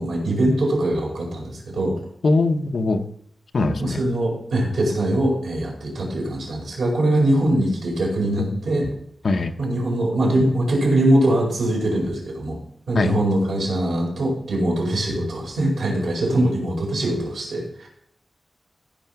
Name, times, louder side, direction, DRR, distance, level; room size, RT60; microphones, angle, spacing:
voice 1, 0.0-2.0 3.8-8.9 9.6-12.6 12.9-17.9, right 1 dB, 90° right, -2 dB, 4.8 m, -22 dB
voice 2, 2.2-3.0 3.5-4.0 9.2-9.5 13.0-13.1, left 3 dB, 50° left, 6 dB, 0.8 m, -21 dB
15.5 x 5.7 x 5.8 m, 0.69 s
wide cardioid pair, 170°, 0 cm